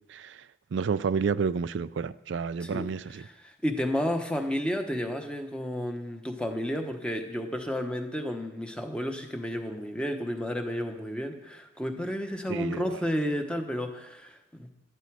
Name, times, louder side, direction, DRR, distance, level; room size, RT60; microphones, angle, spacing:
voice 1, 0.1-3.3 12.5-13.0, right 5 dB, 65° right, 14 dB, 0.4 m, -30 dB
voice 2, 3.1-14.7, equal, 5° left, 5 dB, 1.0 m, -32 dB
12.0 x 12.0 x 4.7 m, 0.92 s
head